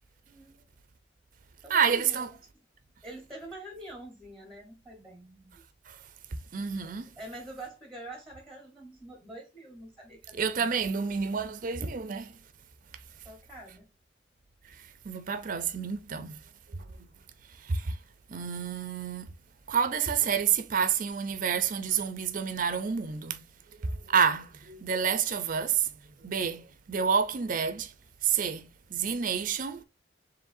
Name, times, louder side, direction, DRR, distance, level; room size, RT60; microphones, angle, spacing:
voice 1, 0.3-0.6 1.6-2.3 3.0-5.6 6.6-10.7 13.2-13.9, right 1 dB, ahead, 1.1 m, -46 dB
voice 2, 1.7-2.3 5.9-6.0 6.5-7.1 10.4-12.4 15.0-16.4 17.6-18.0 18.3-19.3 19.7-23.4 23.8-25.9 26.2-27.9 28.2-29.8, right 7 dB, 45° right, 0.5 m, -29 dB
4.7 x 3.2 x 2.6 m
head